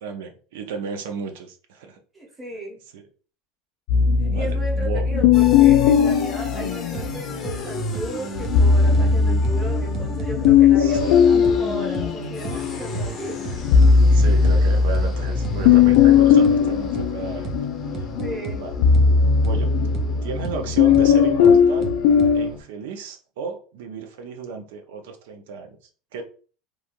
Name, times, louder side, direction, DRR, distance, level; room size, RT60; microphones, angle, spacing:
voice 1, 0.0-2.0 2.9-3.0 4.2-5.1 10.8-11.3 13.5-13.6 14.1-17.5 17.9-18.1 18.5-18.7 19.4-19.7 20.2-21.9 22.3-25.8 26.1-26.2, right 5 dB, 80° right, 5 dB, 0.6 m, -34 dB
voice 2, 2.1-2.8 4.2-13.5 18.2-18.7, right 1 dB, 10° right, -3 dB, 0.9 m, -35 dB
sound 1, 3.9-7.4 8.4-12.8 13.2-22.5, left 6 dB, 65° left, 0.3 m, -18 dB
sound 2, 5.3-22.6, left 2 dB, 25° left, 0.6 m, -34 dB
sound 3, 6.9-7.1 7.4-7.6 7.9-8.1 8.4-8.6 8.9-9.1 9.4-9.6 9.9-10.6 10.9-11.1 11.4-11.6 11.9-12.1 12.4-12.6 12.9-13.1 13.4-14.6 14.9-15.1 15.4-15.6 15.9-16.1 16.4-16.6 16.9-17.1 17.4-17.6 17.9-18.6 18.9-19.1 19.4-19.6 19.9-20.1 20.4-20.6 20.9-21.1 21.4-22.3, right 4 dB, 30° right, 0.4 m, -32 dB
3.1 x 2.4 x 2.5 m, 0.39 s
supercardioid pair, 160°, 0 cm